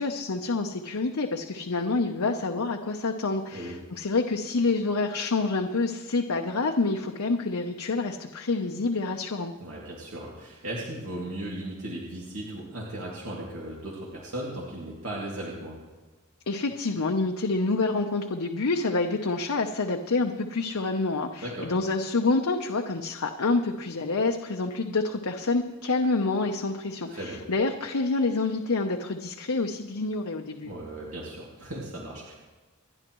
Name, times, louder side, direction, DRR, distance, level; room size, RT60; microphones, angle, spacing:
voice 1, 0.0-9.5 16.5-30.7, left 3 dB, 80° left, 3 dB, 0.8 m, -27 dB
voice 2, 9.6-15.8 21.4-21.7 27.1-27.4 30.6-32.3, right 1 dB, 70° right, -5 dB, 2.5 m, -37 dB
28.5 x 11.0 x 3.1 m, 1.3 s
head